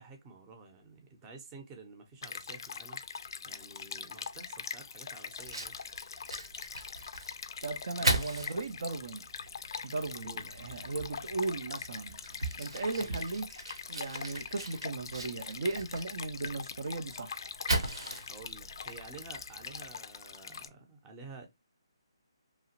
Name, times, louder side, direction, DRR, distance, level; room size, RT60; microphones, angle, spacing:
voice 1, 0.0-3.0 3.4-5.8 8.0-8.2 10.2-10.4 13.0-13.2 18.3-21.5, right 4 dB, 20° right, 0.6 m, -51 dB
Stream, 2.2-20.7, left 6 dB, 55° left, 0.3 m, -43 dB
Fire, 5.4-20.0, right 2 dB, 75° right, 0.9 m, -39 dB
voice 2, 7.6-9.3 9.8-12.2 12.6-13.5 13.9-17.5, right 3 dB, 60° right, 0.4 m, -36 dB
2.9 x 2.3 x 2.8 m
figure-of-eight pair, 155°, 3 cm